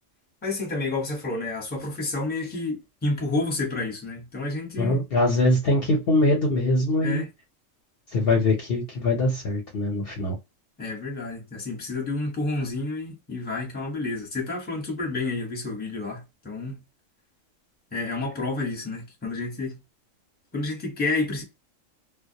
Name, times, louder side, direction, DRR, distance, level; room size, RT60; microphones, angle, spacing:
voice 1, 0.4-5.0 7.0-7.3 10.8-16.8 17.9-19.8 20.5-21.4, left 2 dB, 10° left, 0.7 m, -30 dB
voice 2, 4.8-7.2 8.1-10.4, left 2 dB, 55° left, 0.8 m, -22 dB
2.1 x 2.1 x 2.7 m
omnidirectional pair, 1.4 m